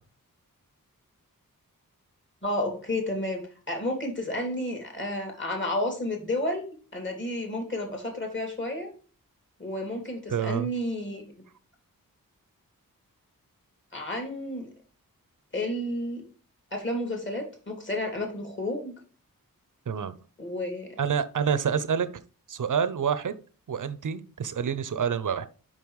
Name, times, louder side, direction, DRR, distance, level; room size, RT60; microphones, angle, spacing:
voice 1, 2.4-3.4 3.7-6.6 6.9-8.9 9.6-11.2 13.9-14.7 15.5-16.2 16.7-19.0 20.4-20.9, left 1 dB, 35° left, 2 dB, 2.9 m, -31 dB
voice 2, 10.3-10.7 19.9-20.1 21.0-22.1 22.5-23.3 23.7-25.5, right 7 dB, 60° right, 13 dB, 0.7 m, -27 dB
5.4 x 5.4 x 4.8 m, 0.39 s
cardioid pair, 60°, 35 cm